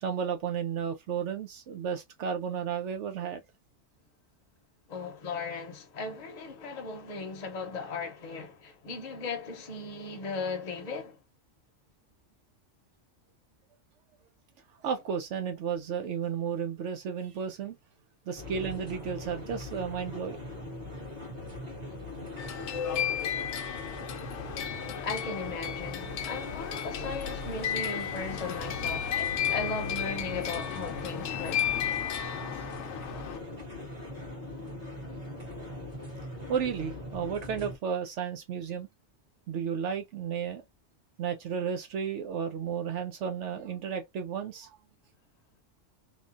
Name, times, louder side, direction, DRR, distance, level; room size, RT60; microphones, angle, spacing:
voice 1, 0.0-3.4 14.8-17.8 18.3-20.4 36.5-38.9 39.5-40.6 41.2-44.8, right 7 dB, 70° right, 0.9 m, -33 dB
voice 2, 4.9-11.2 25.0-29.1 29.5-31.6, left 4 dB, 40° left, 0.8 m, -37 dB
sound 1, 18.4-37.8, left 1 dB, 35° right, 1.4 m, -41 dB
sound 2, 22.4-33.4, left 9 dB, 70° left, 0.9 m, -34 dB
3.0 x 2.2 x 2.4 m
omnidirectional pair, 1.3 m